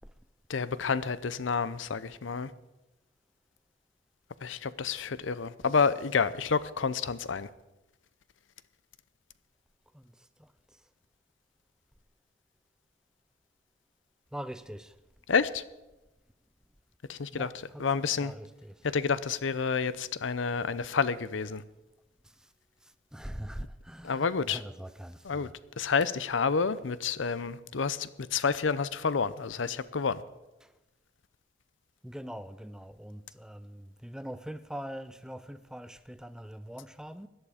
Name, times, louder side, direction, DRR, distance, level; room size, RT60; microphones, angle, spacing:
voice 1, 0.5-2.5 4.4-7.5 15.3-15.6 17.1-18.3 18.8-21.6 24.0-24.6 25.2-25.5 25.8-30.2, left 5 dB, 75° left, 0.6 m, -29 dB
voice 2, 14.3-14.9 17.3-18.5 23.1-25.5 32.0-37.3, equal, 5° right, 0.5 m, -42 dB
17.0 x 11.0 x 5.0 m
head